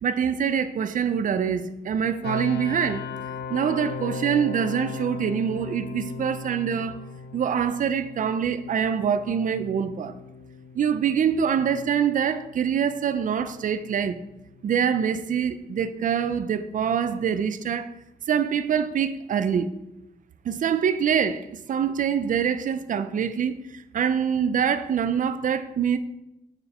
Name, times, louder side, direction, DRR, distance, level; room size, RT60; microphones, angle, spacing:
voice 1, 0.0-3.1 3.5-7.0 7.3-10.1 10.7-14.2 14.6-17.9 18.3-19.7 20.4-26.0, right 7 dB, 50° right, 0.5 m, -25 dB
sound 1, 2.2-15.1, left 5 dB, 75° left, 0.5 m, -38 dB
6.9 x 5.2 x 4.2 m
wide cardioid pair, 145°, 17 cm